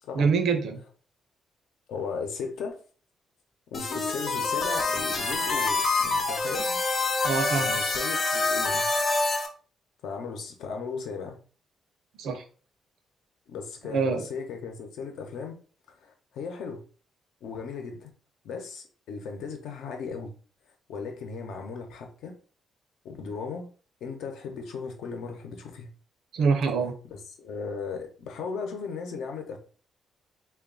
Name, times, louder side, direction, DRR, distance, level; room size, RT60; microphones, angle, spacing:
voice 1, 0.1-0.8 7.2-7.8 12.2-12.4 13.9-14.3 26.3-27.0, right 5 dB, 70° right, 0.7 m, -25 dB
voice 2, 1.9-2.8 3.7-6.8 7.6-8.9 10.0-11.4 13.5-15.6 16.0-16.8 17.4-18.1 18.4-20.3 20.9-22.3 23.0-23.7 24.0-25.9 27.1-29.6, left 5 dB, 85° left, 0.9 m, -36 dB
sound 1, 3.7-9.5, left 3 dB, 40° left, 0.8 m, -26 dB
3.5 x 2.5 x 3.8 m
cardioid pair, 155°, 0 cm